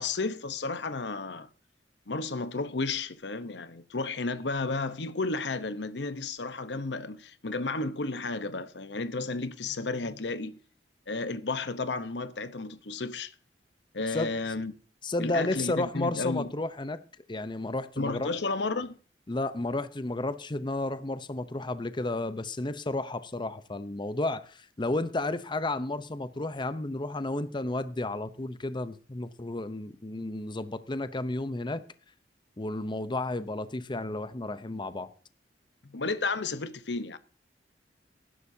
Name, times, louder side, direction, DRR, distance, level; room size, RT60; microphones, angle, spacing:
voice 1, 0.0-1.5 2.1-10.6 11.1-13.3 13.9-14.7 15.2-16.5 18.0-19.0 35.9-37.2, left 3 dB, 85° left, 1.0 m, -32 dB
voice 2, 15.0-17.0 17.3-18.3 19.3-31.8 32.6-35.1, left 2 dB, 25° left, 0.7 m, -32 dB
19.5 x 11.0 x 2.8 m
head